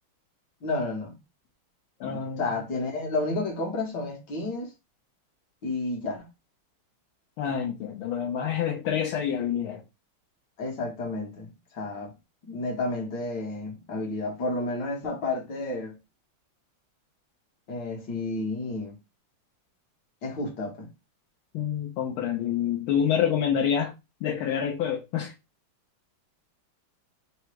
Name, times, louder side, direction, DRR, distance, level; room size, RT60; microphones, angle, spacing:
voice 1, 0.6-1.1 2.0-4.7 5.6-6.3 10.6-12.1 12.4-16.0 17.7-19.0 20.2-20.9, left 2 dB, 60° left, 1.7 m, -31 dB
voice 2, 2.0-2.4 7.4-9.8 21.5-23.9 24.2-25.3, left 8 dB, 80° left, 1.5 m, -27 dB
4.0 x 2.2 x 4.5 m
omnidirectional pair, 2.3 m